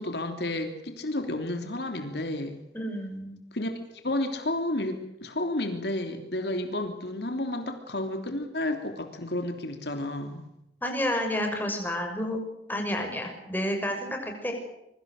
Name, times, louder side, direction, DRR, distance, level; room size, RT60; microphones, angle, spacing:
voice 1, 0.0-2.6 3.5-3.7 4.0-10.4, left 1 dB, 70° left, 5 dB, 3.3 m, -31 dB
voice 2, 2.7-3.4 10.8-12.4 12.7-14.5, left 1 dB, 10° left, 3 dB, 6.2 m, -30 dB
26.5 x 24.0 x 6.6 m, 0.84 s
head